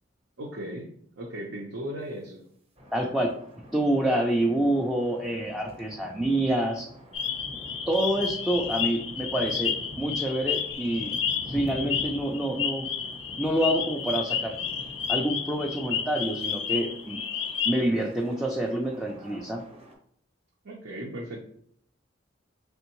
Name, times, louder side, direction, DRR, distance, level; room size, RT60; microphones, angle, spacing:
voice 1, 0.4-0.9 1.2-2.5 20.6-21.4, right 1 dB, 80° right, -2 dB, 0.7 m, -36 dB
sound 1, 2.8-19.9, equal, 30° right, 0.7 m, -46 dB
voice 2, 2.9-3.3 3.7-6.9 7.9-11.1 11.5-12.9 13.4-14.5 15.1-17.2 17.6-19.6, right 1 dB, ahead, -1 dB, 0.3 m, -27 dB
sound 2, 7.1-17.9, left 7 dB, 75° left, 0.5 m, -31 dB
3.5 x 3.4 x 3.0 m, 0.64 s
head